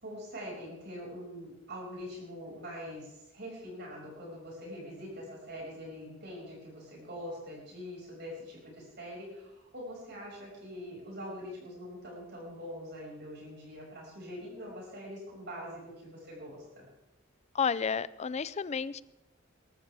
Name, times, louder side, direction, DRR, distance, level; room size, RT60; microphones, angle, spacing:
voice 1, 0.0-16.9, equal, 60° right, -3 dB, 6.0 m, -44 dB
voice 2, 17.5-19.0, left 6 dB, 35° left, 18 dB, 0.4 m, -31 dB
22.0 x 12.5 x 3.5 m, 0.91 s
head